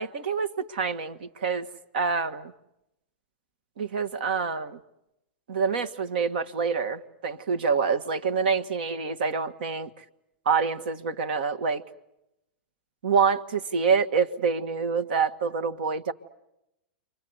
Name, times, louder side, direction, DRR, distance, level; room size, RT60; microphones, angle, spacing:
voice 1, 0.0-1.7 1.9-2.5 3.8-4.8 5.5-9.9 10.4-11.8 13.0-16.1, right 5 dB, 70° right, 12 dB, 1.6 m, -26 dB
30.0 x 24.5 x 8.0 m, 0.89 s
hypercardioid pair, 115°, 5 cm